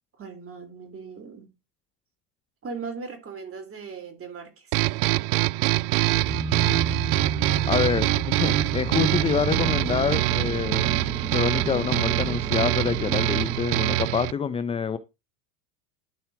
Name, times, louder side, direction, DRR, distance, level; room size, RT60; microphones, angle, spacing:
voice 1, 0.2-1.5 2.6-4.8, right 5 dB, 30° right, 3.2 m, -38 dB
sound 1, 4.7-14.3, right 20 dB, 65° right, 0.5 m, -24 dB
sound 2, 6.0-13.7, right 1 dB, 5° right, 1.2 m, -34 dB
voice 2, 7.7-11.0 11.3-15.0, left 7 dB, 15° left, 0.4 m, -26 dB
12.5 x 4.4 x 4.7 m
supercardioid pair, 110°, 48 cm